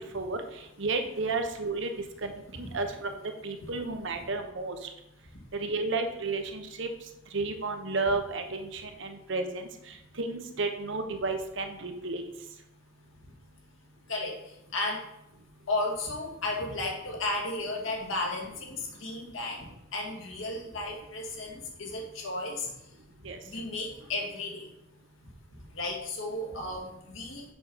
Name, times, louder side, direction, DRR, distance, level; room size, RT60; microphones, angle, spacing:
voice 1, 0.8-1.9 2.2-2.3 2.6-3.1 3.4-4.8 5.5-6.9 7.3-9.6 10.2-12.2 23.2-23.4, right 3 dB, 60° right, 6 dB, 0.9 m, -32 dB
voice 2, 15.7-22.7 23.5-24.7 25.7-27.4, left 2 dB, 75° left, 0 dB, 2.0 m, -34 dB
7.1 x 4.6 x 5.5 m, 0.87 s
head